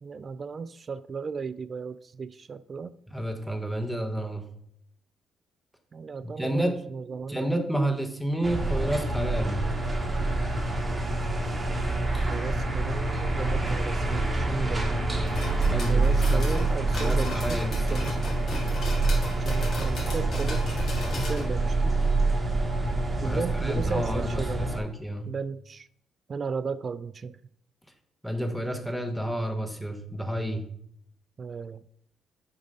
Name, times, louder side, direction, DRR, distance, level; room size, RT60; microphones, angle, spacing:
voice 1, 0.0-2.9 5.9-7.5 11.8-14.9 15.9-17.6 17.9-18.2 19.4-20.8 21.1-21.9 23.2-24.8 25.3-25.9 26.3-27.4 31.4-31.8, right 5 dB, 40° right, 15 dB, 0.3 m, -35 dB
voice 2, 3.1-4.5 6.2-6.8 7.3-9.7 15.7-16.4 16.9-18.2 23.2-25.3 28.2-30.7, right 1 dB, ahead, 6 dB, 1.1 m, -30 dB
sound 1, 8.4-24.8, right 2 dB, 25° right, 1.3 m, -26 dB
sound 2, 15.2-21.4, left 2 dB, 55° left, 2.5 m, -37 dB
6.9 x 4.0 x 5.3 m, 0.70 s
cardioid pair, 90°, 0 cm